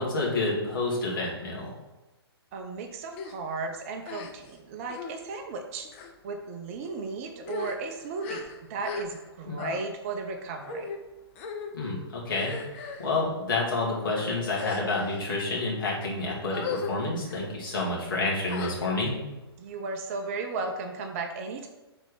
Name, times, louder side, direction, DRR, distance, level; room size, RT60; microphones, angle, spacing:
voice 1, 0.0-1.7 9.5-9.6 11.7-19.2, left 2 dB, 50° left, -4 dB, 2.2 m, -29 dB
voice 2, 2.5-5.9 6.2-10.9 19.6-21.7, right 4 dB, 30° right, 4 dB, 0.6 m, -35 dB
sound 1, 3.1-3.4 4.0-4.6 4.9-5.2 5.9-6.1 6.8-7.0 7.4-9.3 9.6-9.8 10.6-11.0 11.4-11.7 12.3-13.1 13.8-14.0 14.5-15.2 15.8-16.1 16.5-16.9 17.2-17.5 18.5-19.1, left 5 dB, 30° left, 0.7 m, -38 dB
4.9 x 4.3 x 5.6 m, 1.1 s
figure-of-eight pair, 120°, 14 cm